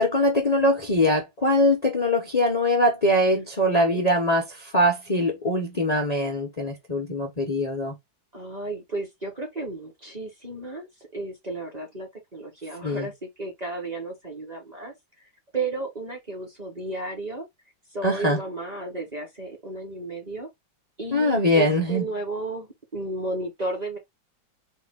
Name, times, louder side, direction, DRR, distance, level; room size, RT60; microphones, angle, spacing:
voice 1, 0.0-8.0 12.8-13.1 18.0-18.4 21.1-22.1, left 1 dB, 80° left, 0.3 m, -22 dB
voice 2, 3.3-4.0 8.3-14.9 15.2-17.5 17.9-20.5 21.0-24.0, right 2 dB, 30° right, 0.8 m, -33 dB
4.4 x 2.6 x 3.5 m
omnidirectional pair, 2.2 m